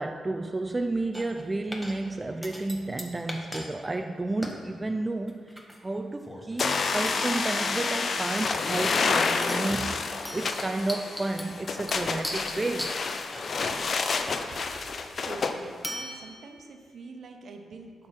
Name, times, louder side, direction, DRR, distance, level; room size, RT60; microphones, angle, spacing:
voice 1, 0.0-13.0, right 2 dB, 20° right, 6 dB, 0.3 m, -32 dB
sound 1, 1.1-1.4 1.7-2.1 2.4-3.7 3.9-4.0 4.4-4.6 5.3-5.9 6.2-6.5 7.1-8.0 8.4-9.1 9.4-9.8 10.2-14.3 15.8-16.7, equal, 5° left, 1.0 m, -39 dB
sound 2, 6.6-15.6, left 4 dB, 50° left, 0.6 m, -29 dB
voice 2, 15.2-18.1, right 3 dB, 60° right, 4 dB, 0.9 m, -45 dB
11.0 x 4.4 x 6.0 m, 2.2 s
cardioid pair, 115°, 0 cm